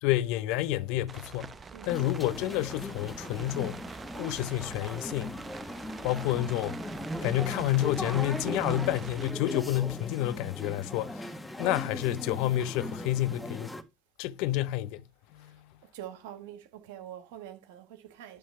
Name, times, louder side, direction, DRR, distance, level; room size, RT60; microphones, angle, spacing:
voice 1, 0.0-1.5 1.8-3.8 4.2-5.4 6.0-6.8 7.2-11.3 11.6-13.7 14.2-15.0 15.3-15.6, left 15 dB, 65° left, 0.6 m, -29 dB
sound 1, 1.1-9.3, right 5 dB, 30° right, 0.8 m, -45 dB
sound 2, 1.9-13.8, left 1 dB, 10° left, 1.6 m, -38 dB
voice 2, 15.8-18.4, right 11 dB, 75° right, 1.4 m, -45 dB
10.0 x 3.4 x 5.6 m
hypercardioid pair, 65°, 0 cm